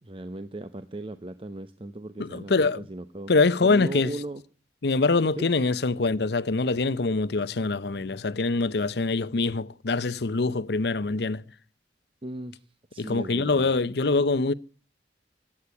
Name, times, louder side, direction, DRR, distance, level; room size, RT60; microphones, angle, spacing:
voice 1, 0.0-3.3 3.6-4.4 5.4-5.5 12.2-12.6 12.9-13.7, right 1 dB, 30° right, 0.8 m, -37 dB
voice 2, 2.2-2.8 3.3-4.1 4.8-11.4 13.0-14.5, left 3 dB, 65° left, 0.7 m, -24 dB
16.5 x 8.6 x 9.7 m
head